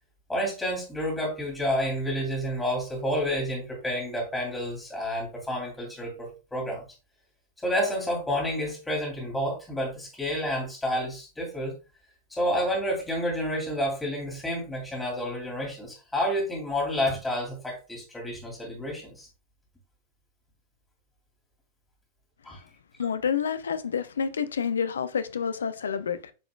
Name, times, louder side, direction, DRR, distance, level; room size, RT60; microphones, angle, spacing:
voice 1, 0.3-6.8 7.6-11.7 12.3-19.3 22.4-22.6, equal, 10° left, 2.9 m, -29 dB
voice 2, 23.0-26.3, left 7 dB, 70° left, 0.5 m, -28 dB
8.3 x 4.9 x 2.3 m
figure-of-eight pair, 90°, 0 cm